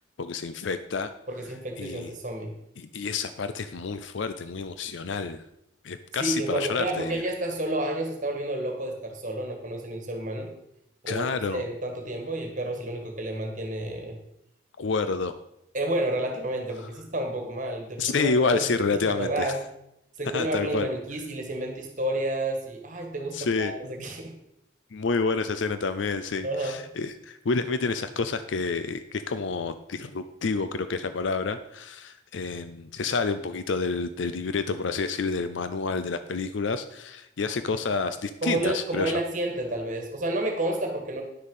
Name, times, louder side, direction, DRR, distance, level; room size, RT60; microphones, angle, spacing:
voice 1, 0.2-1.1 1.8-2.1 2.8-5.4 5.8-7.2 11.1-11.7 14.8-15.4 18.0-19.6 20.3-20.9 23.3-23.7 24.9-39.2, left 4 dB, 75° left, 11 dB, 0.5 m, -29 dB
voice 2, 1.3-2.5 6.2-10.5 11.0-14.2 15.7-19.6 20.2-24.3 26.4-26.8 38.4-41.2, right 1 dB, 40° right, 3 dB, 1.7 m, -30 dB
9.9 x 6.5 x 5.4 m, 0.79 s
head